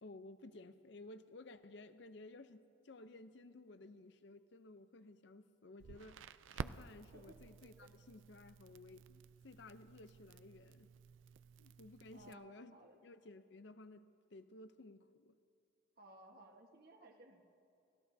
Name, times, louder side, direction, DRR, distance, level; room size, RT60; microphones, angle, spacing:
voice 1, 0.0-6.2 6.5-10.9 11.6-15.4, left 2 dB, 60° left, 11 dB, 0.6 m, -56 dB
Crackle, 5.8-12.3, right 6 dB, 75° right, 0.4 m, -52 dB
voice 2, 7.1-7.9 11.6-11.7 12.1-13.0 16.0-17.5, right 2 dB, 50° right, 2 dB, 1.4 m, -60 dB
30.0 x 16.5 x 2.7 m, 2.5 s
head